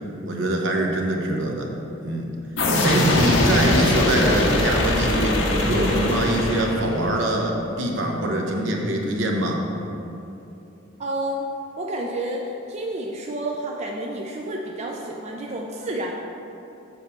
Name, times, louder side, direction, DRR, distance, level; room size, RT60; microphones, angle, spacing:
voice 1, 0.2-1.7 2.0-2.3 2.8-9.6, right 1 dB, 70° right, 1 dB, 1.0 m, -23 dB
sound 1, 2.6-7.2, left 1 dB, 70° left, 0.9 m, -22 dB
voice 2, 11.0-11.5 11.8-16.1, right 1 dB, 35° right, -1 dB, 0.5 m, -30 dB
7.2 x 4.2 x 6.8 m, 2.8 s
head